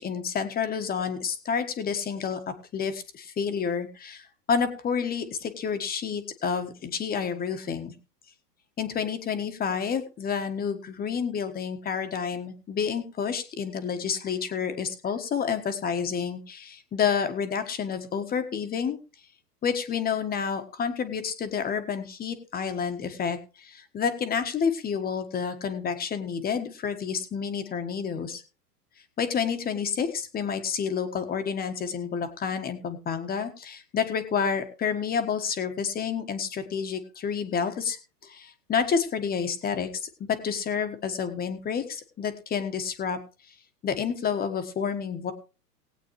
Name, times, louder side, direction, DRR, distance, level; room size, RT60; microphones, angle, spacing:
voice 1, 0.0-7.9 8.8-19.0 19.6-28.4 29.2-38.0 38.2-43.2 43.8-45.3, left 6 dB, 20° left, 8 dB, 1.4 m, -29 dB
19.5 x 8.3 x 3.1 m, 0.33 s
hypercardioid pair, 120°, 48 cm